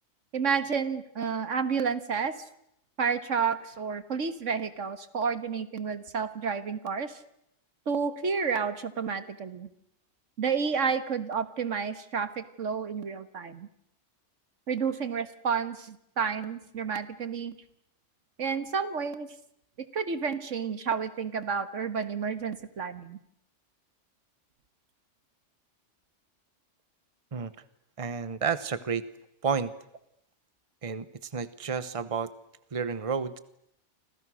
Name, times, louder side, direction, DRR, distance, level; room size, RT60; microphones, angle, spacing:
voice 1, 0.3-2.3 3.0-7.2 7.9-9.7 10.4-13.7 14.7-17.6 18.4-19.3 19.8-23.2, right 6 dB, 85° right, 12 dB, 1.9 m, -30 dB
voice 2, 28.0-29.0 29.4-29.7 30.8-32.3 32.7-33.4, right 6 dB, 30° right, 14 dB, 1.1 m, -31 dB
30.0 x 25.5 x 6.4 m, 0.76 s
omnidirectional pair, 1.2 m